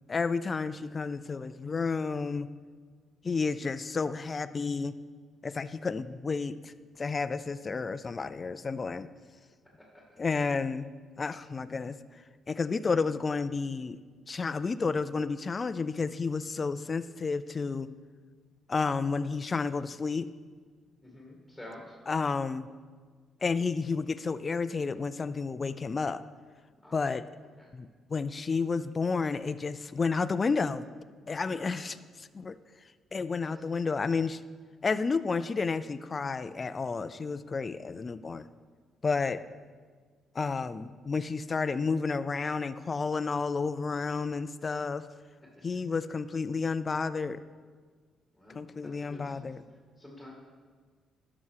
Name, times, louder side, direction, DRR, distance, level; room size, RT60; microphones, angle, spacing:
voice 1, 0.1-2.5 3.2-5.0 5.4-9.1 10.2-10.9 11.2-14.0 14.3-17.9 18.7-20.3 22.1-22.7 23.4-26.2 26.9-27.3 27.7-30.9 31.3-32.6 33.1-34.4 34.8-38.5 39.0-39.4 40.3-45.1 45.6-47.5 48.5-49.6, left 4 dB, 35° left, 13 dB, 0.4 m, -31 dB
voice 2, 21.0-22.0 26.8-27.0 27.6-27.7 31.5-31.7 33.3-33.6 48.3-49.5 50.0-50.3, left 1 dB, ahead, -2 dB, 2.1 m, -49 dB
12.0 x 6.1 x 4.7 m, 1.6 s
cardioid pair, 90°, 0 cm